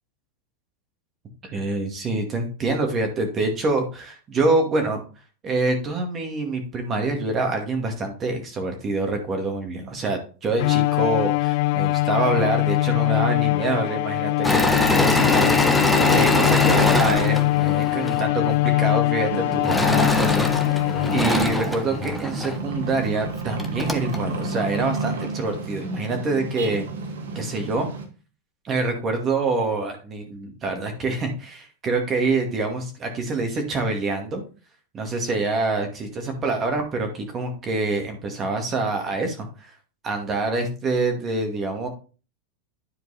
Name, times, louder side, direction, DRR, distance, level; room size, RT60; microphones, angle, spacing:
voice 1, 1.4-5.0 5.4-15.5 16.1-26.8 27.3-27.9 28.6-34.4 34.9-39.7 40.0-41.9, right 3 dB, 30° right, 4 dB, 2.2 m, -26 dB
Bowed string instrument, 10.6-21.8, left 19 dB, 60° left, 0.3 m, -22 dB
Engine / Mechanisms, 14.4-18.2 19.6-22.6 23.2-23.3 23.6-24.2, left 1 dB, 5° left, 1.1 m, -22 dB
sound 1, 19.3-28.1, right 3 dB, 85° right, 2.0 m, -32 dB
10.5 x 4.6 x 4.2 m, 0.35 s
supercardioid pair, 130°, 0 cm